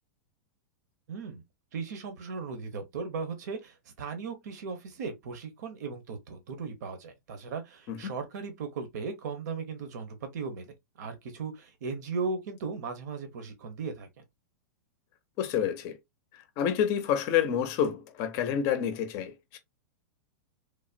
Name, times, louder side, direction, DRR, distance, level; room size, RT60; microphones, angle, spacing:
voice 1, 1.1-1.4 1.7-14.2, right 4 dB, 65° right, 0.9 m, -37 dB
voice 2, 15.4-16.0 16.6-19.6, left 9 dB, 35° left, 0.6 m, -28 dB
3.3 x 2.1 x 2.4 m
supercardioid pair, 155°, 10 cm